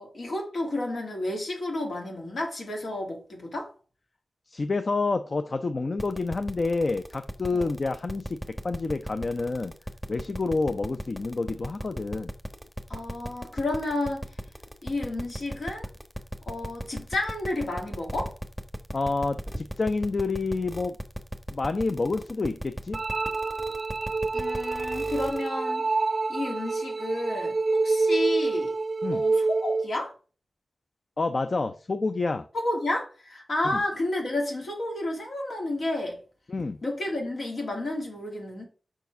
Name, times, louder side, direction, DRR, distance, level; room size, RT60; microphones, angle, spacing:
voice 1, 0.0-3.7 7.5-7.7 12.9-14.3 14.8-15.9 16.5-18.3 24.3-25.9 26.3-28.8 29.1-30.1 32.5-36.2 36.8-38.7, left 1 dB, 75° left, 2.3 m, -31 dB
voice 2, 4.5-8.4 8.6-9.7 10.1-12.3 18.9-21.0 21.5-23.0 29.0-29.2 31.2-32.5 33.6-33.8 36.5-36.8, left 3 dB, 55° left, 0.4 m, -28 dB
sound 1, 6.0-25.5, equal, ahead, 1.0 m, -36 dB
sound 2, 22.9-29.9, right 3 dB, 50° right, 0.4 m, -27 dB
5.8 x 4.6 x 4.5 m
cardioid pair, 45°, 0 cm